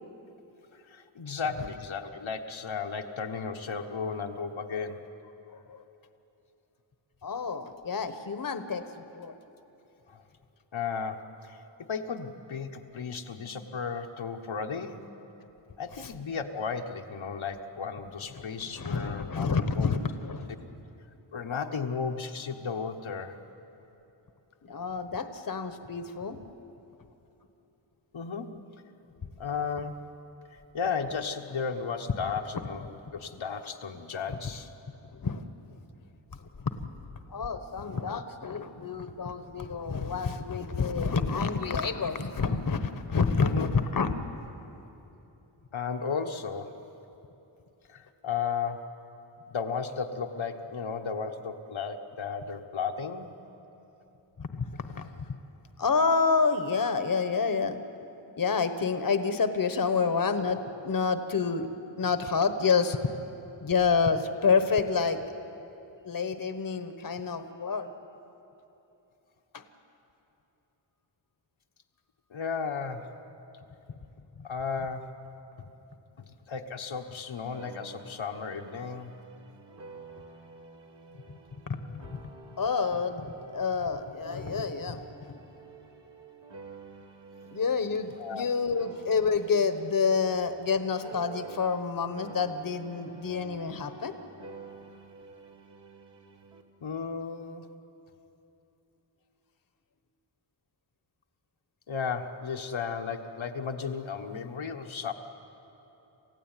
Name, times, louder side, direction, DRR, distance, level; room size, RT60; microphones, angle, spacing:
voice 1, 0.7-5.1 10.1-10.2 10.7-11.6 11.9-15.1 15.8-19.9 21.3-23.4 28.1-28.6 29.4-30.1 30.5-32.9 33.1-34.7 43.4-43.7 45.7-46.8 47.9-49.0 49.5-53.4 72.3-73.1 74.4-75.1 75.6-75.7 76.2-79.1 88.2-88.5 96.8-97.7 101.9-105.1, left 5 dB, 75° left, 3 dB, 1.3 m, -34 dB
voice 2, 5.5-5.8 7.2-9.4 16.0-16.1 18.7-20.5 24.6-26.4 35.1-35.8 36.4-36.9 37.3-44.3 54.4-55.3 55.8-57.8 58.4-61.7 62.0-63.0 63.6-65.2 66.0-67.9 69.5-69.6 74.4-74.5 81.3-81.4 81.7-82.1 82.6-85.4 87.4-94.1, left 5 dB, 45° left, 9 dB, 1.2 m, -28 dB
sound 1, 77.5-91.9 92.2-96.6, right 4 dB, 60° right, 2.1 m, -49 dB
28.0 x 15.5 x 9.1 m, 3.0 s
wide cardioid pair, 80°, 47 cm